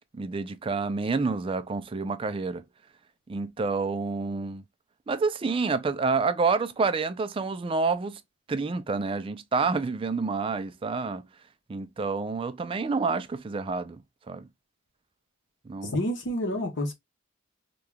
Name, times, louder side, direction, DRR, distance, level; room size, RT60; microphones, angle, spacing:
voice 1, 0.1-2.6 3.3-4.6 5.1-8.2 8.5-11.3 11.7-14.0 14.3-14.5 15.7-16.0, right 4 dB, 25° right, 0.3 m, -28 dB
voice 2, 15.9-16.9, left 1 dB, 60° left, 0.9 m, -28 dB
2.8 x 2.3 x 3.3 m
head